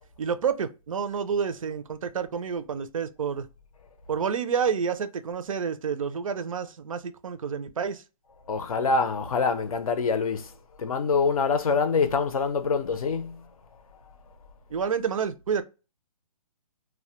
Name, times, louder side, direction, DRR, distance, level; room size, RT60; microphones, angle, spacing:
voice 1, 0.2-3.5 4.1-8.0 14.7-15.6, right 6 dB, 60° right, 0.4 m, -29 dB
voice 2, 8.5-10.5 10.8-13.4, left 5 dB, 70° left, 0.5 m, -25 dB
2.1 x 2.1 x 2.8 m
hypercardioid pair, 180°, 19 cm